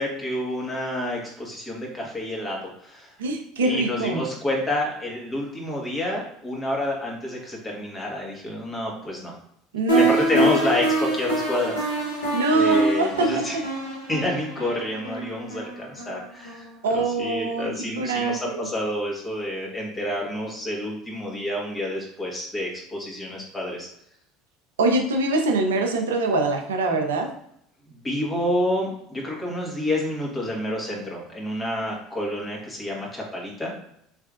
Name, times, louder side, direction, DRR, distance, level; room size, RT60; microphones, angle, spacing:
voice 1, 0.0-3.1 3.6-9.3 9.9-12.2 12.5-13.6 14.1-16.7 16.9-23.9 27.9-33.7, left 1 dB, 20° left, -2 dB, 1.5 m, -29 dB
voice 2, 3.2-4.3 9.7-10.5 12.3-13.6 16.8-18.6 24.8-27.3, right 2 dB, 80° right, 3 dB, 0.6 m, -23 dB
sound 1, 9.9-16.7, right 1 dB, 85° left, 1.1 m, -26 dB
3.4 x 3.2 x 2.5 m, 0.72 s
hypercardioid pair, 70°, 0 cm